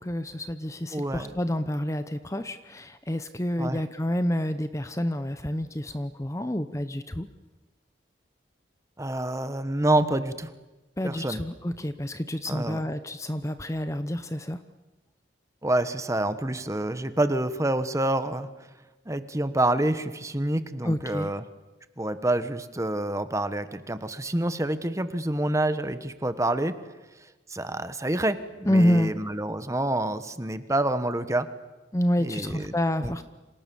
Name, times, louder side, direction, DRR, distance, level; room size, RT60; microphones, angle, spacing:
voice 1, 0.0-7.3 11.0-14.6 20.8-21.3 28.7-29.2 31.9-33.2, left 1 dB, 15° left, 11 dB, 0.8 m, -28 dB
voice 2, 0.9-1.3 3.6-3.8 9.0-10.5 11.0-11.4 12.5-12.8 15.6-18.5 19.1-21.4 22.0-26.7 27.5-31.5 32.2-32.7 33.0-33.2, right 1 dB, 15° right, 11 dB, 1.2 m, -27 dB
29.0 x 26.5 x 7.1 m, 1.1 s
head